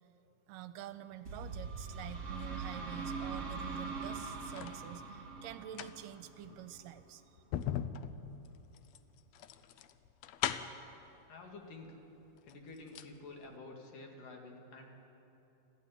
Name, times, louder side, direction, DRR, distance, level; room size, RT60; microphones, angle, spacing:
voice 1, 0.5-7.2, right 11 dB, 80° right, 11 dB, 2.3 m, -47 dB
sound 1, 1.2-6.9, right 4 dB, 30° right, 2.7 m, -42 dB
sound 2, 3.8-4.8 5.5-10.9 11.9-12.0 12.4-13.2 13.5-13.6, left 10 dB, 85° left, 1.5 m, -40 dB
voice 2, 11.3-12.0 12.4-14.9, left 3 dB, 70° left, 2 dB, 3.8 m, -50 dB
25.5 x 14.0 x 9.5 m, 3.0 s
omnidirectional pair, 4.0 m